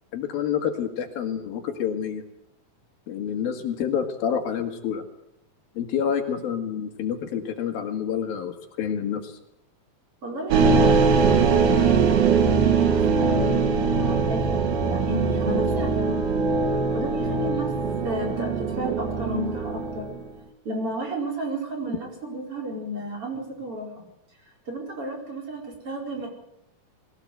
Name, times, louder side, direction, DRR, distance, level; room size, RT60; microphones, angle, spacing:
voice 1, 0.1-2.2 3.1-5.0 5.8-9.4, left 8 dB, 75° left, 5 dB, 3.7 m, -28 dB
voice 2, 10.2-16.2 16.7-17.7 18.0-20.1 20.6-24.0 24.7-26.3, right 1 dB, 35° right, 1 dB, 5.4 m, -33 dB
sound 1, 10.5-20.2, right 5 dB, 80° right, 3.7 m, -22 dB
22.0 x 16.5 x 8.0 m, 0.83 s
omnidirectional pair, 4.2 m